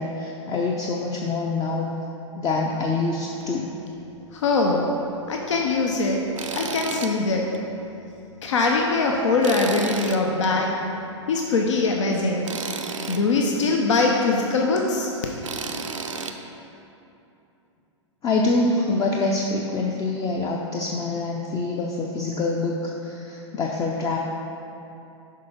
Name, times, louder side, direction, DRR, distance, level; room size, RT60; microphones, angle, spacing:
voice 1, 0.0-1.9 2.3-3.7 18.2-24.2, left 3 dB, 20° left, 0 dB, 0.5 m, -25 dB
voice 2, 4.3-4.9 5.3-6.2 6.5-7.5 8.4-10.8 11.3-12.5 13.1-15.1, left 3 dB, 70° left, 0 dB, 0.7 m, -22 dB
Tools, 6.4-7.1 7.5-7.6 9.4-10.5 12.4-13.2 15.4-16.3, right 5 dB, 90° right, 0.6 m, -32 dB
6.5 x 4.9 x 5.2 m, 2.8 s
hypercardioid pair, 115°, 16 cm